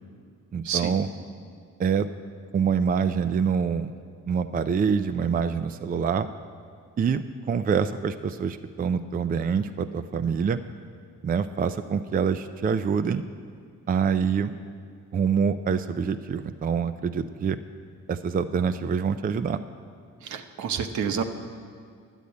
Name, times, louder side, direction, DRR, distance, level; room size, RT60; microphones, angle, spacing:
voice 1, 0.5-1.1 1.8-2.1 2.5-3.9 4.3-6.3 7.0-10.6 11.2-13.2 13.9-14.5 15.1-17.6 18.1-19.6, right 6 dB, 30° right, 9 dB, 0.4 m, -25 dB
voice 2, 20.2-21.2, right 7 dB, 70° right, 7 dB, 0.9 m, -29 dB
10.5 x 8.2 x 8.4 m, 2.2 s
cardioid pair, 90°, 30 cm